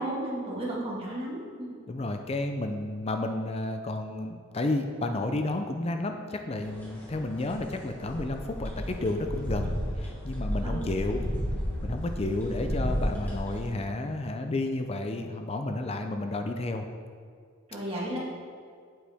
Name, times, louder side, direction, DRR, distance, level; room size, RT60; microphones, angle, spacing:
voice 1, 0.0-1.7 10.6-11.0 17.7-18.2, right 1 dB, 25° right, -6 dB, 1.9 m, -34 dB
voice 2, 1.9-11.3 11.8-16.9, left 2 dB, 30° left, 5 dB, 0.5 m, -31 dB
sound 1, 6.6-13.7, equal, 10° left, 1.5 m, -33 dB
8.5 x 7.7 x 3.5 m, 2.1 s
head